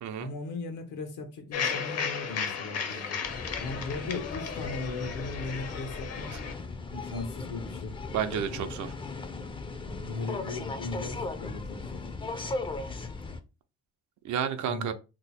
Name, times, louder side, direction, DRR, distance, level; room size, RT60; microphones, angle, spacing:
voice 1, 0.2-3.2 3.6-6.3 6.9-8.0 9.8-12.1 14.7-14.9, left 3 dB, 90° left, 0.9 m, -38 dB
sound 1, 1.5-6.5, left 6 dB, 55° left, 0.6 m, -34 dB
sound 2, 3.2-13.4, left 3 dB, 15° left, 0.4 m, -38 dB
voice 2, 8.1-8.9 14.2-14.9, right 8 dB, 70° right, 0.6 m, -31 dB
2.9 x 2.0 x 4.1 m
cardioid pair, 90°, 30 cm